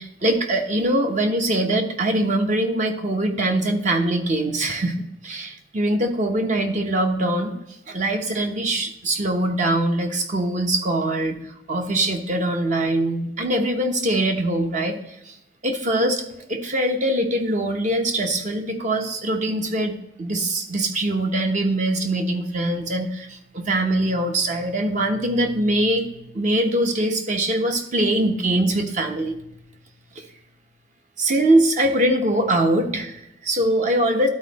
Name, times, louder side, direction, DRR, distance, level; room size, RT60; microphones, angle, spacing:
voice 1, 0.0-4.9 5.2-7.6 7.9-15.0 15.2-15.4 15.6-29.5 30.2-30.3 31.2-34.3, right 1 dB, 45° right, 5 dB, 0.9 m, -22 dB
12.0 x 4.2 x 4.1 m, 0.84 s
head